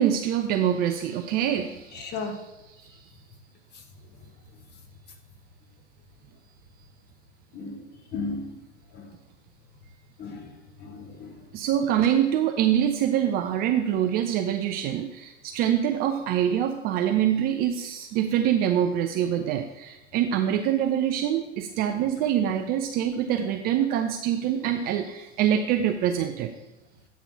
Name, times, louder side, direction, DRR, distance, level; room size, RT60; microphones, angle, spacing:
voice 1, 0.0-2.2 2.8-3.0 11.5-26.5, right 10 dB, 30° right, 5 dB, 0.4 m, -25 dB
voice 2, 1.9-2.4 7.5-7.8 8.1-8.6 8.9-9.1 10.2-10.5 10.8-11.3, left 3 dB, 30° left, 4 dB, 1.3 m, -34 dB
8.3 x 3.7 x 6.0 m, 1.0 s
figure-of-eight pair, 95°, 35 cm